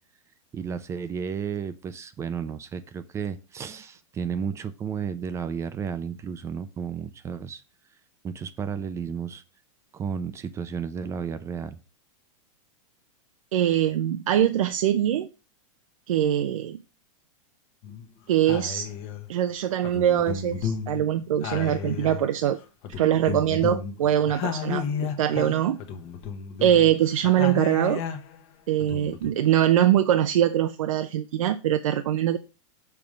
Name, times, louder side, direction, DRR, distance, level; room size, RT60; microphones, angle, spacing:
voice 1, 0.5-7.6 8.2-9.4 9.9-11.8, right 6 dB, 15° right, 0.5 m, -32 dB
voice 2, 13.5-15.3 16.1-16.8 18.3-18.9 19.3-22.6 23.0-24.8 25.2-25.8 26.6-28.0 28.7-32.4, right 11 dB, 85° right, 0.7 m, -23 dB
sound 1, 17.8-18.1 18.5-19.3 19.8-22.5 22.8-28.4 28.8-29.3, left 7 dB, 35° left, 1.1 m, -33 dB
7.0 x 3.6 x 6.3 m
supercardioid pair, 145°, 17 cm